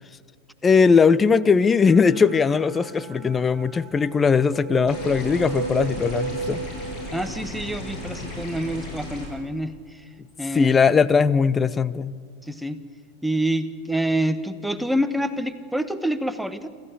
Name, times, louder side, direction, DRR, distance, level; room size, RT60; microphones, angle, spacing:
voice 1, 0.6-6.6 10.5-12.1, left 5 dB, 15° left, 18 dB, 0.6 m, -19 dB
sound 1, 1.4-11.5, right 6 dB, 30° right, 3.2 m, -51 dB
sound 2, 1.5-3.1 4.0-7.9, right 5 dB, 70° right, 0.8 m, -35 dB
sound 3, 4.9-9.3, left 2 dB, 40° left, 8.0 m, -35 dB
voice 2, 7.1-10.0 10.4-10.8 12.4-12.8 13.2-16.7, right 1 dB, ahead, 11 dB, 1.1 m, -27 dB
27.5 x 14.5 x 7.9 m, 2.1 s
figure-of-eight pair, 90°, 0 cm